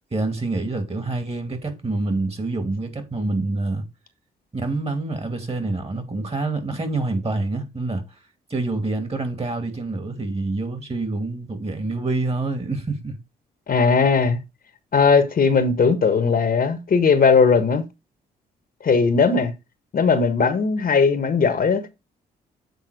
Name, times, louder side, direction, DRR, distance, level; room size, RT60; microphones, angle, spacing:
voice 1, 0.1-3.8 4.5-8.0 8.5-13.2, right 2 dB, 35° right, 2.6 m, -26 dB
voice 2, 13.7-14.4 14.9-17.8 18.8-19.5 19.9-21.9, left 5 dB, 50° left, 1.4 m, -18 dB
8.1 x 3.8 x 5.1 m
supercardioid pair, 55°, 19 cm